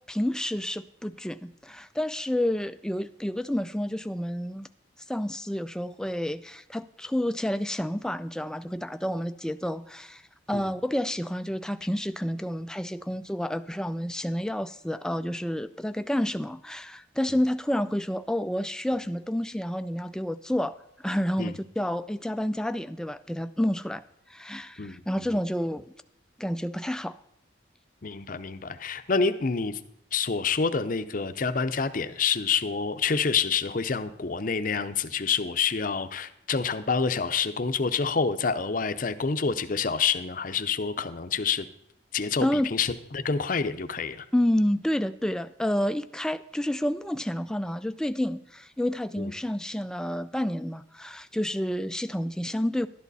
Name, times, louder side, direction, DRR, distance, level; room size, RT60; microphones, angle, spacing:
voice 1, 0.1-4.7 5.1-10.2 10.5-24.0 24.3-25.9 26.4-27.2 42.4-42.7 44.3-52.9, left 1 dB, 5° left, 12 dB, 0.3 m, -29 dB
voice 2, 24.8-25.4 28.0-29.8 30.1-41.7 42.1-44.3 49.2-49.3, left 5 dB, 45° left, 10 dB, 0.6 m, -27 dB
12.0 x 10.5 x 4.1 m, 0.75 s
head